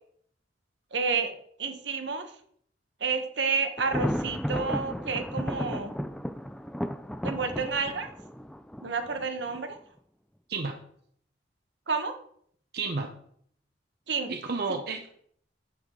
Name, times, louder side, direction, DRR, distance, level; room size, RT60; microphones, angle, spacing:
voice 1, 0.9-1.3 1.6-2.3 3.0-5.9 7.2-8.1 8.8-9.8 11.9-12.2 14.1-14.3 14.7-14.8, right 5 dB, 75° right, 7 dB, 1.2 m, -30 dB
Thunder, 3.8-9.6, equal, 5° left, 0.4 m, -34 dB
voice 2, 10.5-10.8 12.7-13.1 14.3-15.1, right 4 dB, 60° right, 4 dB, 0.8 m, -31 dB
9.2 x 8.4 x 3.8 m, 0.65 s
head